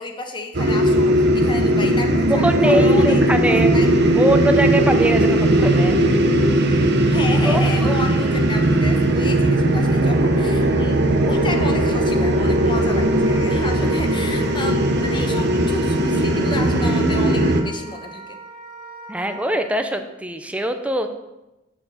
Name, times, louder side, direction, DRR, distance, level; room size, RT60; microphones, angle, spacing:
voice 1, 0.0-3.9 7.1-18.3, left 2 dB, 25° left, 4 dB, 1.0 m, -32 dB
sound 1, 0.5-17.6, right 1 dB, 60° right, 0.9 m, -18 dB
voice 2, 2.3-3.7 4.2-6.0 7.5-8.2 19.1-21.1, right 1 dB, 5° right, 7 dB, 0.6 m, -22 dB
Wind instrument woodwind instrument, 11.2-19.6, right 2 dB, 25° right, 2.5 m, -39 dB
6.3 x 6.1 x 6.3 m, 0.98 s
head